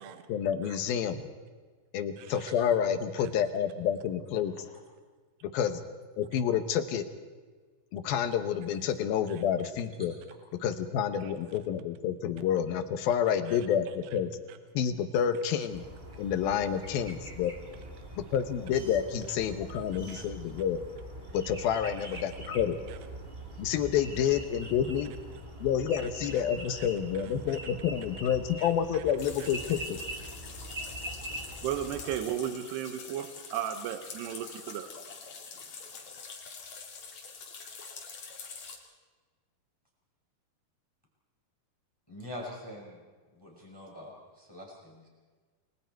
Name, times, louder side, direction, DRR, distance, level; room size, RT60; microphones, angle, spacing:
voice 1, 0.3-1.2 1.9-4.5 5.4-5.8 6.2-7.0 7.9-10.1 10.6-14.3 14.7-15.8 16.2-17.5 18.2-20.8 21.3-22.8 23.6-25.1 25.6-30.0, left 8 dB, 70° left, 9 dB, 2.6 m, -29 dB
sound 1, 15.7-32.2, right 1 dB, 25° right, 1.2 m, -43 dB
sound 2, 29.2-38.8, left 5 dB, 45° left, 3.4 m, -45 dB
voice 2, 31.6-34.9, right 10 dB, 75° right, 9 dB, 3.0 m, -35 dB
voice 3, 42.1-43.0 43.3-45.1, left 1 dB, 5° left, -2 dB, 5.0 m, -44 dB
29.0 x 22.0 x 4.6 m, 1.4 s
omnidirectional pair, 5.0 m